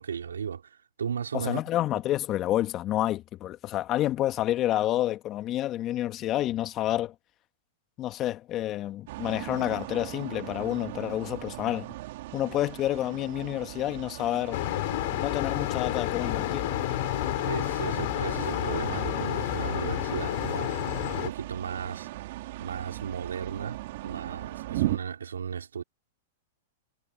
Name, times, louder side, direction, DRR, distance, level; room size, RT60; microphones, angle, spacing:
voice 1, 0.0-1.6 17.5-22.1 22.6-25.8, right 7 dB, 90° right, 5.0 m, -35 dB
voice 2, 1.3-7.1 8.0-11.9 12.3-14.6 15.2-16.7, left 13 dB, 35° left, 1.8 m, -29 dB
sound 1, 9.1-25.0, right 17 dB, 60° right, 3.3 m, -38 dB
sound 2, 14.5-21.3, left 21 dB, 55° left, 7.2 m, -30 dB
hypercardioid pair, 120°, 0 cm